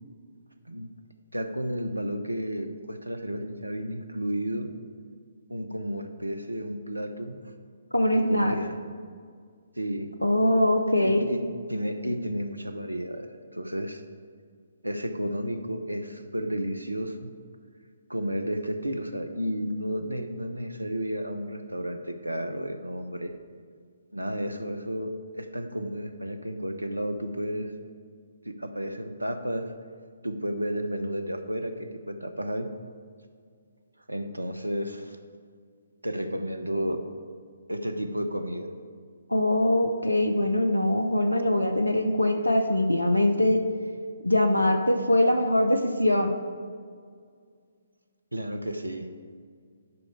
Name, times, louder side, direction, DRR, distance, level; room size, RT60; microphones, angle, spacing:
voice 1, 1.3-4.7 5.5-7.4 8.1-8.8 9.8-10.1 10.9-11.4 11.7-14.0 14.8-17.3 18.1-23.3 24.1-27.7 28.4-29.7 30.2-32.7 34.1-35.2 36.0-37.0 37.7-38.7 48.3-49.1, equal, 85° right, 8 dB, 0.8 m, -32 dB
voice 2, 7.9-8.6 10.2-11.3 39.3-43.6 44.2-46.3, left 1 dB, 85° left, 6 dB, 0.7 m, -22 dB
11.0 x 5.5 x 4.8 m, 2.1 s
figure-of-eight pair, 135°, 0 cm